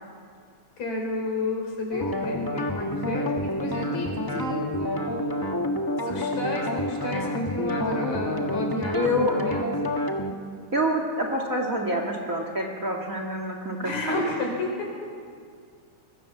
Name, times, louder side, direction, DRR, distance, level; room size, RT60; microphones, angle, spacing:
voice 1, 0.8-5.5 6.0-9.7 13.8-14.9, left 1 dB, 70° left, 0 dB, 6.1 m, -31 dB
sound 1, 1.9-10.4, left 1 dB, 35° left, 0.3 m, -28 dB
voice 2, 8.9-9.4 10.7-14.2, equal, 30° right, 2 dB, 2.6 m, -27 dB
25.5 x 22.0 x 7.2 m, 2.1 s
omnidirectional pair, 3.3 m